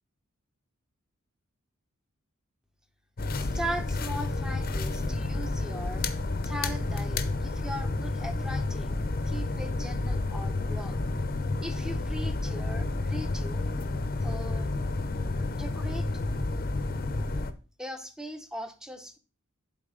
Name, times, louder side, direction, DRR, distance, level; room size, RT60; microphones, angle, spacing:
sound 1, 3.2-17.5, left 2 dB, 45° left, 0.7 m, -30 dB
voice 1, 3.4-6.1 6.4-9.0 9.3-11.0 11.6-13.7 14.2-14.7 15.5-16.1 17.8-19.2, right 1 dB, 5° right, 7 dB, 0.8 m, -39 dB
7.6 x 4.1 x 6.2 m, 0.34 s
head